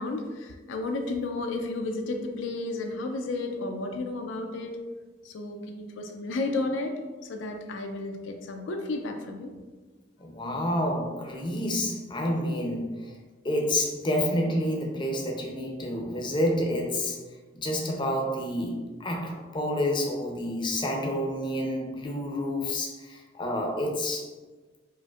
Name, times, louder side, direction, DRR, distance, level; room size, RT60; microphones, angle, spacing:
voice 1, 0.0-4.8 5.2-7.0 7.3-9.5, left 2 dB, 75° left, 4 dB, 0.4 m, -32 dB
voice 2, 10.2-13.1 13.4-17.2 17.5-24.3, left 1 dB, 25° left, 0 dB, 0.5 m, -29 dB
4.9 x 2.5 x 2.4 m, 1.3 s
head